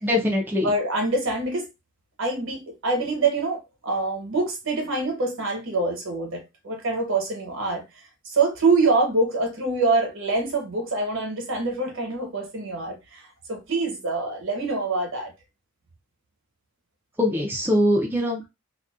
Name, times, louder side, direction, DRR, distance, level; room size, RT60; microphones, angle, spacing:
voice 1, 0.0-0.7 17.2-18.5, left 1 dB, 10° right, 0.4 m, -22 dB
voice 2, 0.6-1.7 2.2-15.3, right 3 dB, 65° right, 1.0 m, -25 dB
2.5 x 2.2 x 2.3 m
head